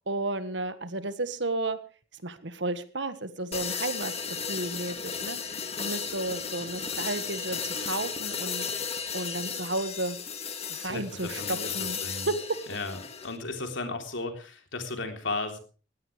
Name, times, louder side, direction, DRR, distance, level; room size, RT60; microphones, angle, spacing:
voice 1, 0.1-1.8 2.2-8.7 9.1-10.2 10.7-12.0 12.2-12.4, right 2 dB, 65° right, 11 dB, 1.6 m, -33 dB
sound 1, 3.5-13.4, left 6 dB, 35° left, 1.9 m, -35 dB
voice 2, 10.8-11.7 12.0-12.3 12.7-13.0 13.2-15.6, left 3 dB, 75° left, 5 dB, 3.7 m, -35 dB
20.0 x 16.5 x 3.4 m, 0.37 s
head